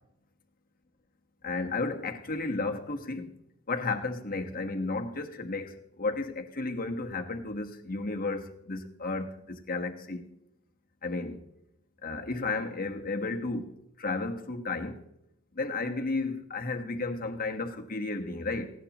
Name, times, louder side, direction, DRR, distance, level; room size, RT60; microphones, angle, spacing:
voice 1, 1.4-3.3 3.7-10.2 11.0-11.4 12.0-15.0 15.5-18.7, left 3 dB, 40° left, 1.4 m, -33 dB
18.5 x 16.5 x 3.0 m
head